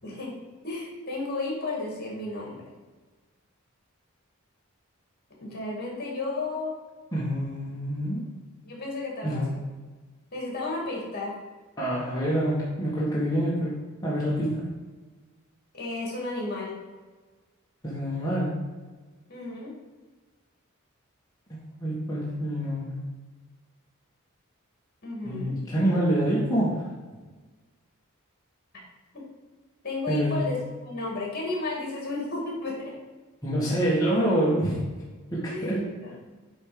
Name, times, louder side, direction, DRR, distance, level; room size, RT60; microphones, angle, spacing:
voice 1, 0.0-0.3 0.6-2.7 5.4-6.8 8.6-9.6 10.3-11.3 15.7-16.8 19.3-19.7 25.0-25.6 29.1-29.2 29.8-32.9 35.5-35.7 36.0-36.1, left 2 dB, 50° left, -2 dB, 2.4 m, -33 dB
voice 2, 7.1-8.2 9.2-9.5 11.8-14.7 17.8-18.6 21.5-22.9 25.2-26.9 30.1-30.5 33.4-34.8 35.3-35.9, right 1 dB, 15° left, -8 dB, 1.4 m, -26 dB
8.4 x 3.5 x 5.1 m, 1.3 s
head